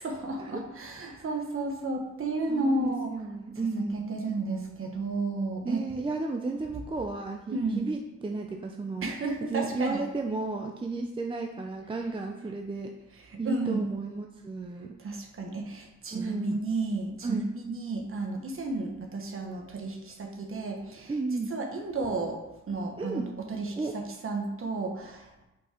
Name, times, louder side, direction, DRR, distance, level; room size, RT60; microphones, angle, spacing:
voice 1, 0.0-3.2 3.8-5.9 7.5-7.8 9.0-10.0 13.2-13.8 15.0-21.1 21.5-22.4 22.7-25.4, right 2 dB, 45° right, 2 dB, 1.2 m, -32 dB
voice 2, 2.5-4.1 5.6-9.1 9.5-12.9 13.4-14.9 16.1-16.7 17.2-17.5 21.1-21.5 23.0-23.3 23.8-23.9, right 3 dB, 20° right, 2 dB, 0.4 m, -33 dB
5.6 x 4.6 x 4.4 m, 0.95 s
wide cardioid pair, 135°, 30 cm